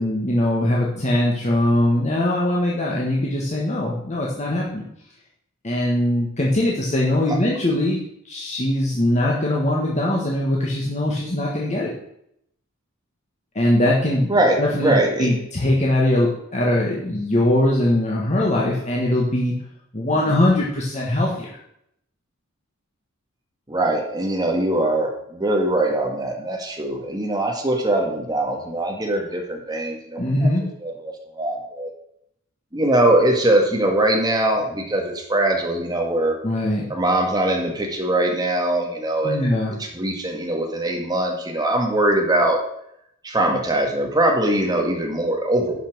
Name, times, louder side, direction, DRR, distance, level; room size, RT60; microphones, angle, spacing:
voice 1, 0.0-4.8 5.6-11.9 13.5-14.3 14.6-14.9 15.2-19.5 19.9-21.6 30.2-30.6 36.4-36.8 39.2-39.8, left 1 dB, 35° left, -4 dB, 1.6 m, -21 dB
voice 2, 14.3-15.3 23.7-30.5 30.8-31.9 32.7-36.4 36.9-39.5 39.8-42.6 43.2-45.8, right 1 dB, 20° right, 1 dB, 1.7 m, -22 dB
11.0 x 5.8 x 6.1 m, 0.74 s
head